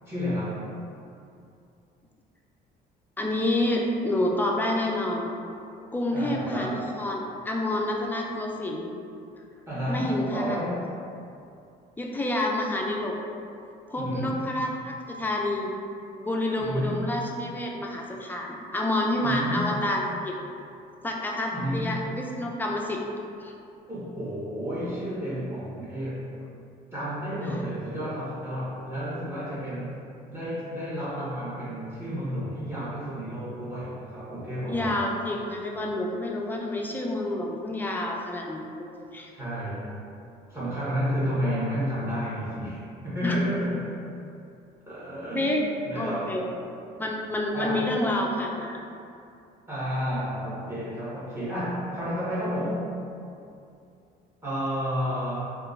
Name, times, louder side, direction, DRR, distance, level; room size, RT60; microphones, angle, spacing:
voice 1, 0.1-0.7 6.1-6.8 9.7-10.9 13.9-14.4 16.6-17.2 19.2-19.7 21.5-22.0 23.9-26.3 26.9-30.0 30.3-35.0 39.3-39.9 40.5-44.0 44.9-45.6 45.8-46.4 47.5-48.0 49.7-52.9 54.4-55.6, equal, 15° right, -10 dB, 1.3 m, -31 dB
voice 2, 3.2-5.3 5.9-8.9 9.9-10.6 12.0-13.1 13.9-15.7 16.2-20.3 21.0-23.0 23.4-23.5 34.7-39.3 43.2-43.4 45.3-46.5 47.0-48.8, left 1 dB, 10° left, -1 dB, 0.3 m, -28 dB
3.6 x 2.4 x 2.5 m, 2.6 s
cardioid pair, 110°, 17 cm